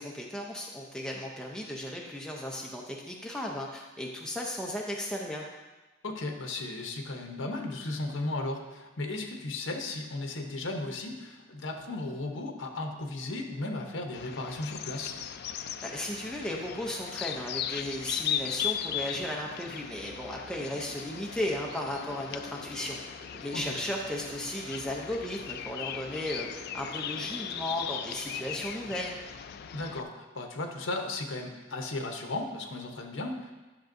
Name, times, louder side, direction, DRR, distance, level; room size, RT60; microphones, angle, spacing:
voice 1, 0.0-5.5 15.8-23.0 23.4-29.1, left 1 dB, 5° left, -2 dB, 0.6 m, -35 dB
voice 2, 6.0-15.2 23.5-23.8 29.7-33.5, left 2 dB, 75° left, 3 dB, 0.9 m, -35 dB
sound 1, 14.1-30.0, left 9 dB, 55° left, 0.3 m, -38 dB
sound 2, 19.9-28.7, equal, 35° right, 1.9 m, -52 dB
10.0 x 6.0 x 2.6 m, 1.2 s
head